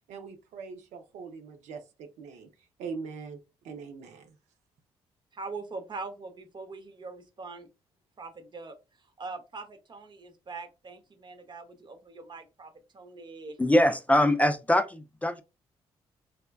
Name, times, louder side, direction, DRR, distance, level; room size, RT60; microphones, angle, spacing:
voice 1, 0.1-2.5 2.8-3.4 3.6-4.3, right 5 dB, 80° right, 0.5 m, -41 dB
voice 2, 5.3-7.7 8.2-8.8 9.2-13.6, right 3 dB, 40° right, 0.7 m, -42 dB
voice 3, 13.6-15.4, left 1 dB, 10° left, 0.4 m, -23 dB
3.4 x 2.2 x 2.2 m
supercardioid pair, 55°, 12 cm